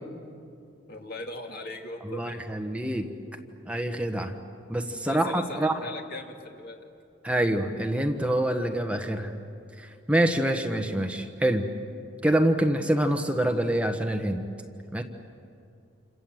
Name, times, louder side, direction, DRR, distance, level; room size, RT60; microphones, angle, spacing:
voice 1, 0.9-2.4 5.0-6.9, left 1 dB, 50° left, 2 dB, 2.6 m, -39 dB
voice 2, 2.0-3.1 3.7-4.3 4.7-5.8 7.2-9.3 9.8-11.7 12.2-14.4 14.9-15.0, right 1 dB, 5° right, 4 dB, 1.3 m, -26 dB
28.5 x 26.5 x 7.8 m, 2.5 s
head